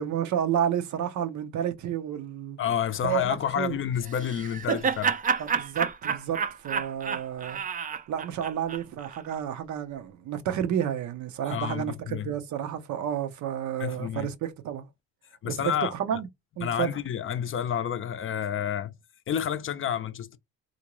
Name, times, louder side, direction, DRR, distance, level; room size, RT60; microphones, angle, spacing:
voice 1, 0.0-2.6 3.0-3.7 5.4-6.4 6.6-7.6 8.1-14.9 15.4-16.3 16.6-16.9, right 9 dB, 70° right, 0.7 m, -30 dB
voice 2, 2.6-5.1 11.5-12.3 13.8-14.3 15.4-15.9 16.6-18.9 19.3-20.4, left 9 dB, 45° left, 0.5 m, -29 dB
Laughter, 4.0-9.2, right 6 dB, 30° right, 0.4 m, -30 dB
3.5 x 2.6 x 3.0 m
cardioid pair, 90°, 30 cm